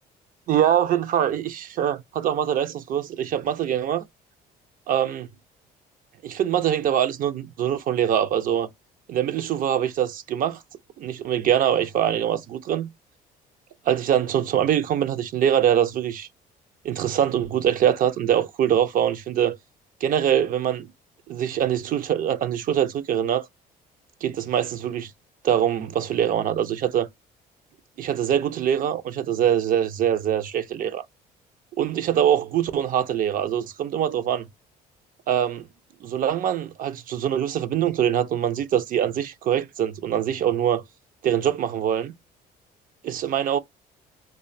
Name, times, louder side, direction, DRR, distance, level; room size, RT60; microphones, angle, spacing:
voice 1, 0.5-4.0 4.9-5.3 6.2-8.7 9.1-10.6 11.0-12.9 13.9-16.3 16.8-19.6 20.0-20.9 21.3-23.5 24.2-25.1 25.4-27.1 28.0-31.0 31.8-34.5 35.3-35.7 36.0-40.8 41.2-42.1 43.0-43.6, right 10 dB, 55° right, 0.4 m, -23 dB
2.4 x 2.2 x 2.5 m
cardioid pair, 110°, 17 cm